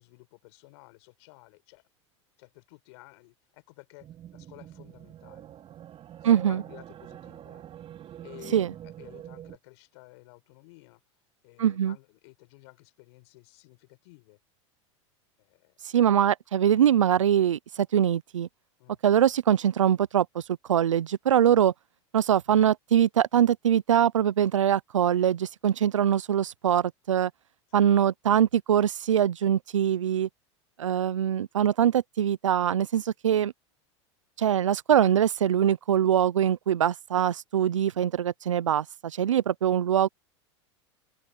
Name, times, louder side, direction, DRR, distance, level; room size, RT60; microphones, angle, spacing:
voice 1, 0.0-1.8 2.4-5.5 6.2-7.6 8.0-11.0 11.4-14.4 15.4-15.7 18.8-19.0 27.7-27.9, left 26 dB, 65° left, 5.3 m, -53 dB
sound 1, 4.0-9.6, right 11 dB, 35° right, 5.8 m, -45 dB
voice 2, 6.2-6.6 8.5-8.7 11.6-11.9 15.9-18.5 19.0-20.4 20.7-21.7 22.1-27.3 27.7-30.3 30.8-33.5 34.4-40.1, right 10 dB, 90° right, 0.6 m, -23 dB
open air
hypercardioid pair, 95°, 16 cm